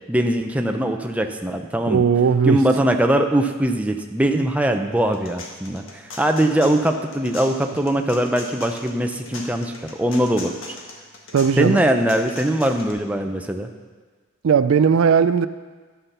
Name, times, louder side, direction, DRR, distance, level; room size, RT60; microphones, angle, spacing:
voice 1, 0.1-2.0 2.5-9.7 10.0-10.8 11.6-13.7, right 1 dB, 5° right, 4 dB, 0.5 m, -21 dB
voice 2, 1.9-2.6 11.3-11.8 14.4-15.5, right 6 dB, 80° right, 13 dB, 0.4 m, -17 dB
sound 1, 4.9-12.9, left 2 dB, 70° left, 1.6 m, -39 dB
11.0 x 5.7 x 6.7 m, 1.4 s
head